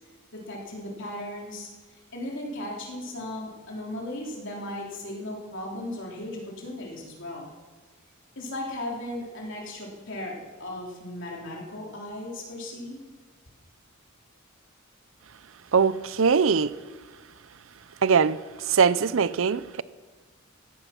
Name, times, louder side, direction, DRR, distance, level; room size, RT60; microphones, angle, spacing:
voice 1, 0.3-1.7 2.1-7.5 8.4-13.0, left 1 dB, 65° left, 3.5 m, -36 dB
voice 2, 15.7-16.7 18.0-18.4 18.7-19.8, right 6 dB, 70° right, 0.6 m, -21 dB
17.0 x 14.5 x 5.9 m
head